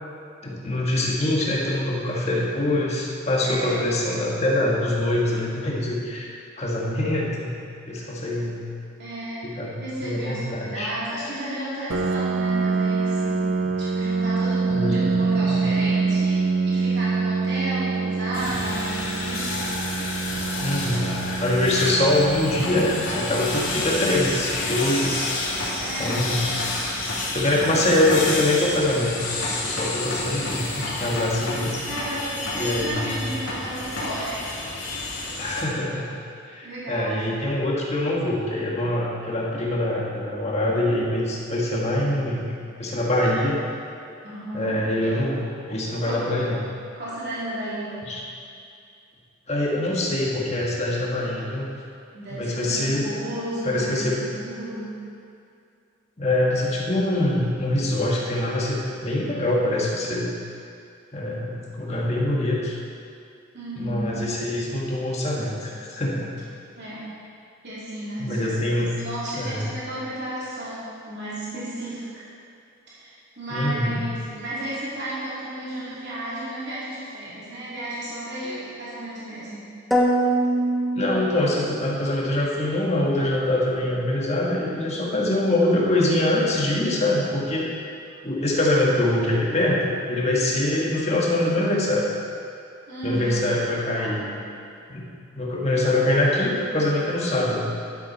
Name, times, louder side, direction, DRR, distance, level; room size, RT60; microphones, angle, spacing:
voice 1, 0.4-6.3 6.6-7.5 7.9-8.6 9.4-10.9 13.6-13.7 14.7-15.7 20.6-21.1 21.4-25.3 26.0-26.5 27.3-29.2 29.5-31.8 32.5-33.4 35.4-36.1 36.4-42.5 42.8-43.6 44.5-46.6 48.0-48.2 49.5-51.7 52.3-53.1 53.6-54.2 56.2-60.3 61.1-62.7 63.8-66.3 68.2-68.9 69.3-69.7 73.5-74.0 80.9-87.7 88.2-92.1 93.0-94.3 94.9-95.1 95.3-97.8, left 1 dB, 30° left, -3 dB, 1.7 m, -24 dB
voice 2, 3.4-3.8 9.0-9.5 9.8-13.4 13.8-19.6 21.7-21.8 25.8-26.2 31.3-31.4 31.8-34.5 35.0-35.4 36.6-37.3 44.2-44.8 46.0-46.2 46.9-48.0 52.1-55.0 63.5-64.2 66.8-67.1 67.6-72.2 72.9-79.6 92.9-93.4 93.9-94.2 96.1-96.2, right 1 dB, 50° right, -10 dB, 3.2 m, -33 dB
Piano, 11.9-27.3, right 4 dB, 85° right, 0.7 m, -26 dB
sound 1, 18.3-35.6, left 2 dB, 80° left, 2.9 m, -29 dB
sound 2, 79.9-81.9, right 1 dB, ahead, 1.0 m, -23 dB
11.5 x 10.5 x 4.2 m, 2.5 s
head